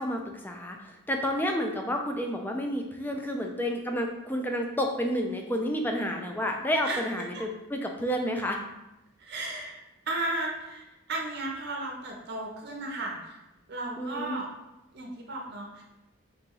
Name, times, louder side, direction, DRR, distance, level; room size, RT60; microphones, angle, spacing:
voice 1, 0.0-8.6 14.0-14.4, equal, 10° left, 2 dB, 0.4 m, -30 dB
voice 2, 9.2-9.8 10.1-13.4 13.7-14.5 14.9-15.8, right 2 dB, 55° right, -1 dB, 0.7 m, -34 dB
3.7 x 3.1 x 3.7 m, 0.95 s
head